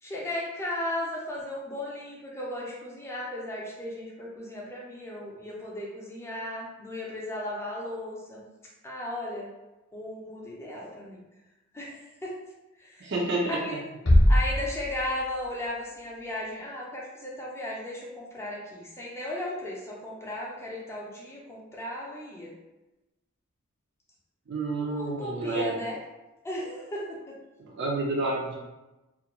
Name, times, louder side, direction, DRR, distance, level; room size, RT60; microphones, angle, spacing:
voice 1, 0.0-8.5 8.8-9.5 9.9-11.2 11.7-12.3 12.8-13.1 13.5-13.8 14.3-22.5 24.8-26.0 26.4-27.3, left 1 dB, 10° left, -4 dB, 0.4 m, -36 dB
voice 2, 13.0-13.8 24.5-25.8 27.6-28.5, right 2 dB, 50° right, -3 dB, 0.5 m, -29 dB
sound 1, 14.1-15.7, left 1 dB, 50° left, 0.7 m, -22 dB
2.4 x 2.2 x 2.9 m, 1.0 s
head